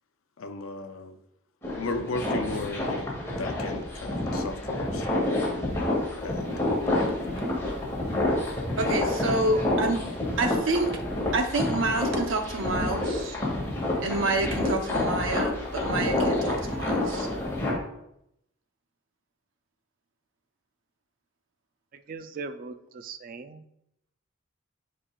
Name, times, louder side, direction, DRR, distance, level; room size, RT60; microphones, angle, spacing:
voice 1, 0.4-1.1 1.7-3.1 3.4-5.0 6.2-7.1, left 3 dB, 85° left, 0.6 m, -35 dB
sound 1, 1.6-17.7, left 1 dB, 15° left, 2.1 m, -28 dB
voice 2, 8.8-10.0 10.4-10.9 11.3-13.4 14.0-17.3, right 2 dB, 70° right, 0.9 m, -28 dB
voice 3, 21.9-23.6, right 4 dB, 45° right, 0.4 m, -39 dB
9.8 x 5.0 x 2.4 m
head